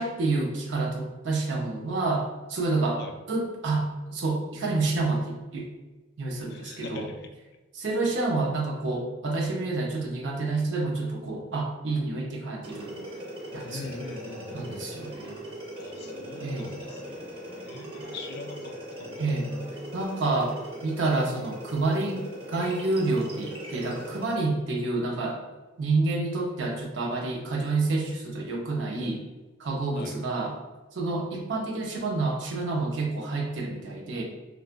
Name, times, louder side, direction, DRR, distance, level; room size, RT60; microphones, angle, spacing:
voice 1, 0.0-3.0 3.3-5.7 6.2-7.1 7.7-13.0 13.5-13.9 14.5-15.4 16.4-16.7 19.2-19.5 19.9-25.4 25.8-29.3 29.6-30.6 30.9-34.2, right 3 dB, 70° right, 0 dB, 0.5 m, -28 dB
voice 2, 6.5-7.3 13.6-14.9 15.8-19.3 29.9-30.2, left 3 dB, 60° left, 5 dB, 0.3 m, -42 dB
sound 1, 12.6-24.5, equal, 30° right, 0.6 m, -40 dB
3.3 x 2.0 x 2.3 m, 1.2 s
head